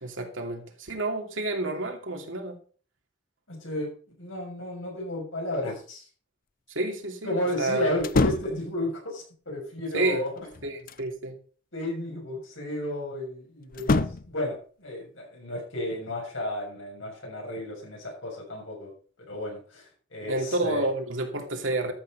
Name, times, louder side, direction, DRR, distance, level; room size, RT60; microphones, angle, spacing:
voice 1, 0.0-2.6 6.7-7.9 9.9-10.2 10.6-11.3 20.3-21.9, right 2 dB, 75° right, 2.7 m, -29 dB
voice 2, 3.5-3.9 4.2-6.1 7.2-10.3 11.7-18.9 19.3-20.9, left 1 dB, 75° left, 6.7 m, -33 dB
sound 1, 8.0-8.6 10.3-11.1 13.7-14.4, left 3 dB, 45° left, 0.6 m, -26 dB
13.0 x 6.7 x 5.4 m
head